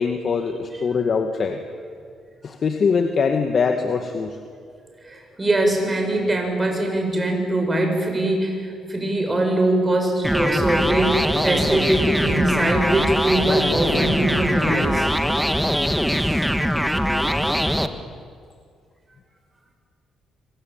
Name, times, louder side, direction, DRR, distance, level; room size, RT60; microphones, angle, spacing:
voice 1, 0.0-1.6 2.4-4.4, left 5 dB, 50° left, 5 dB, 2.1 m, -22 dB
voice 2, 5.0-15.1 16.1-16.5, right 1 dB, 20° right, 3 dB, 7.7 m, -22 dB
sound 1, 10.2-17.9, equal, ahead, 1.7 m, -22 dB
26.0 x 25.5 x 9.1 m, 2.1 s
cardioid pair, 90°, 0 cm